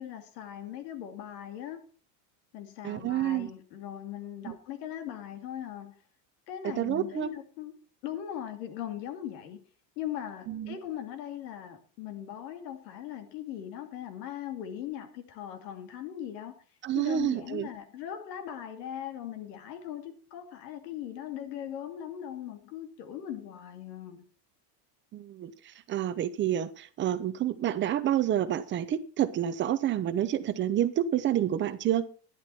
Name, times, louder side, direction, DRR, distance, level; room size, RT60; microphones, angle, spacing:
voice 1, 0.0-1.8 2.5-6.0 6.5-7.7 8.0-9.6 10.0-16.6 16.9-24.3, left 10 dB, 85° left, 2.5 m, -39 dB
voice 2, 2.8-3.5 4.5-4.6 6.6-7.3 10.5-10.8 16.8-17.7 25.1-25.5 25.9-32.0, right 11 dB, 25° right, 0.7 m, -28 dB
11.5 x 11.0 x 4.3 m
cardioid pair, 160°, 49 cm